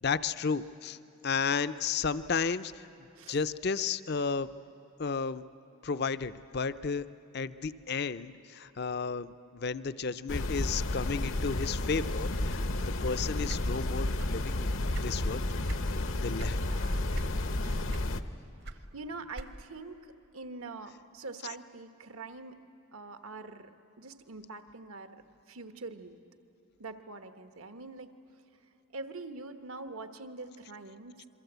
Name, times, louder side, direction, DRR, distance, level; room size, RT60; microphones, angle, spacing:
voice 1, 0.0-1.0 1.2-2.7 3.3-4.5 5.0-5.4 5.8-7.0 7.3-12.7 13.0-14.7 15.0-15.5 16.2-16.6 21.4-21.5, left 5 dB, 50° left, 14 dB, 0.5 m, -33 dB
sound 1, 10.3-18.2, left 1 dB, 65° left, 0.9 m, -31 dB
sound 2, 13.4-14.5 14.8-15.9 16.4-16.6 17.1-17.6 17.9-19.8, right 1 dB, 50° right, 0.9 m, -41 dB
voice 2, 16.5-17.8 18.9-20.1 20.3-22.6 22.9-23.7 24.0-25.2 25.5-26.2 26.8-28.1 28.9-31.4, right 3 dB, 80° right, 8 dB, 1.2 m, -44 dB
27.0 x 23.5 x 8.1 m, 2.7 s
head